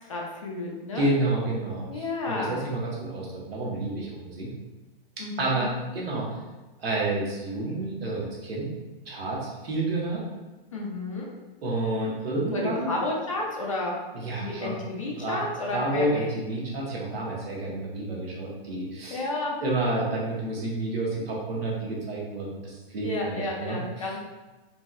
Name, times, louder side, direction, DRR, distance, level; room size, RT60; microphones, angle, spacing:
voice 1, 0.0-1.1 1.9-2.6 5.2-5.7 10.7-11.3 12.5-14.0 14.4-16.3 19.1-19.6 23.0-24.2, left 2 dB, 35° left, -2 dB, 0.4 m, -31 dB
voice 2, 0.9-4.5 5.4-6.4 6.8-8.7 9.1-10.2 11.6-12.9 14.1-14.8 15.2-15.4 15.7-19.2 19.6-23.8, right 2 dB, 80° right, -4 dB, 1.2 m, -29 dB
3.0 x 2.6 x 2.3 m, 1.2 s
hypercardioid pair, 175°, 30 cm